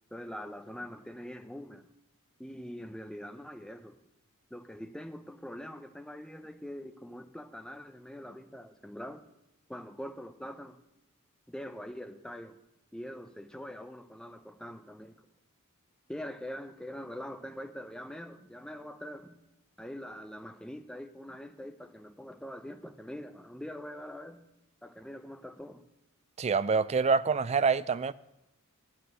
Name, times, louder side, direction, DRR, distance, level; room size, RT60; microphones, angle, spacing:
voice 1, 0.1-1.9 2.4-4.0 4.5-9.2 9.7-10.8 11.5-12.6 12.9-15.1 16.1-19.4 19.8-24.4 24.8-25.8, equal, 5° left, 0.6 m, -43 dB
voice 2, 26.4-28.1, right 5 dB, 30° right, 0.3 m, -26 dB
9.5 x 8.5 x 7.5 m
head